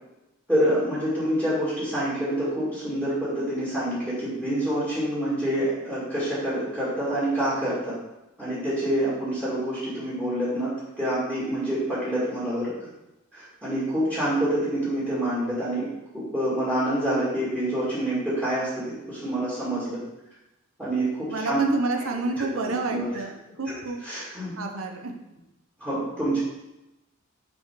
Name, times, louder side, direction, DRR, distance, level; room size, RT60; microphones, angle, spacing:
voice 1, 0.5-8.0 8.4-12.7 13.3-15.9 16.1-20.0 20.8-21.6 22.8-23.0 24.0-24.5 25.8-26.4, right 1 dB, 10° right, -10 dB, 2.3 m, -27 dB
voice 2, 21.3-24.0 24.6-25.1, right 2 dB, 90° right, 3 dB, 0.9 m, -29 dB
5.9 x 4.5 x 4.8 m, 0.97 s
head